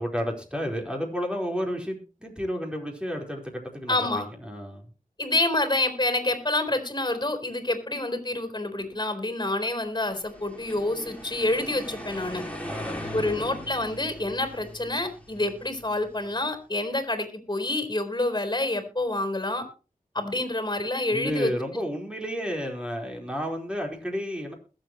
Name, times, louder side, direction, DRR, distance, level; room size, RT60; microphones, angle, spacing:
voice 1, 0.0-4.9 12.6-13.3 21.1-24.5, equal, 5° right, 0 dB, 4.4 m, -31 dB
voice 2, 3.9-4.3 5.2-12.4 13.1-19.6 20.1-21.5, left 2 dB, 30° left, 7 dB, 4.1 m, -27 dB
sound 1, 10.1-16.3, equal, 10° left, 4.1 m, -40 dB
21.5 x 7.9 x 3.1 m, 0.34 s
cardioid pair, 40°, 15 cm